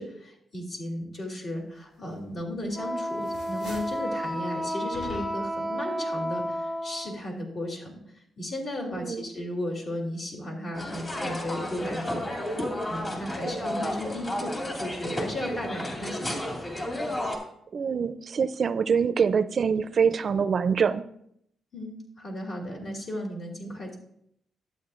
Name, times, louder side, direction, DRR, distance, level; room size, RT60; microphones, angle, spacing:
voice 1, 0.0-16.7 21.7-24.0, left 1 dB, 55° left, -1 dB, 2.8 m, -35 dB
sound 1, 2.4-2.8 3.1-4.1 4.9-5.6, equal, 90° left, 2.4 m, -43 dB
Wind instrument woodwind instrument, 2.7-7.2, equal, 15° left, 1.6 m, -32 dB
voice 2, 8.9-9.3 13.4-13.5 17.7-21.0, right 6 dB, 55° right, 14 dB, 0.4 m, -25 dB
sound 2, 10.7-17.4, left 1 dB, 30° left, 2.5 m, -32 dB
12.0 x 8.3 x 2.5 m, 0.72 s
cardioid pair, 85°, 0 cm